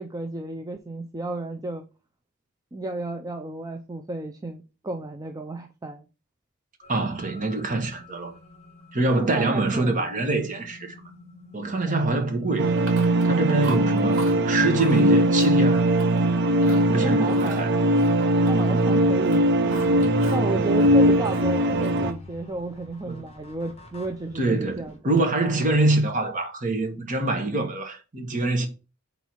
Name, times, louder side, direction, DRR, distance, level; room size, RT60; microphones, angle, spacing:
voice 1, 0.0-1.8 2.7-6.1 9.1-10.1 11.9-12.2 16.9-17.8 18.5-19.5 20.0-25.5, right 2 dB, 20° right, 0.5 m, -32 dB
sound 1, 6.8-25.0, left 2 dB, 30° left, 1.2 m, -43 dB
voice 2, 6.9-8.3 8.9-10.9 11.5-12.7 13.2-15.9 16.6-17.7 23.1-23.2 24.3-28.7, right 2 dB, 40° right, 1.4 m, -25 dB
sound 2, 12.6-22.1, right 1 dB, 60° right, 0.6 m, -20 dB
Chewing mastication, 12.8-13.3 13.6-14.4 14.7-15.0 15.4-16.2 16.6-16.9 17.3-18.9 19.2-20.5 20.7-22.1, right 3 dB, 80° right, 2.1 m, -40 dB
4.6 x 4.0 x 5.5 m
head